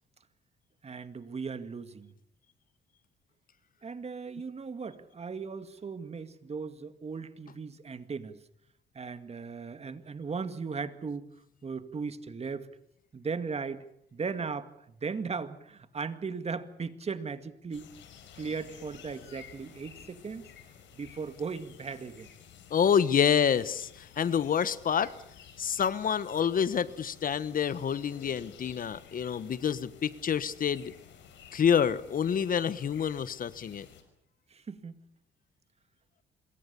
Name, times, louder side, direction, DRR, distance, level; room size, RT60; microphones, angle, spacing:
voice 1, 0.8-2.1 3.8-8.4 8.9-11.3 11.6-12.7 13.1-13.9 14.1-17.9 18.4-20.5 20.9-22.3 34.5-35.0, right 5 dB, 35° right, 11 dB, 2.1 m, -37 dB
sound 1, 17.7-34.0, left 8 dB, 80° left, 5.5 m, -53 dB
voice 2, 22.7-25.1 25.6-30.9 31.5-33.9, left 8 dB, 50° left, 16 dB, 1.2 m, -27 dB
26.5 x 22.5 x 7.0 m, 0.73 s
cardioid pair, 95°, 19 cm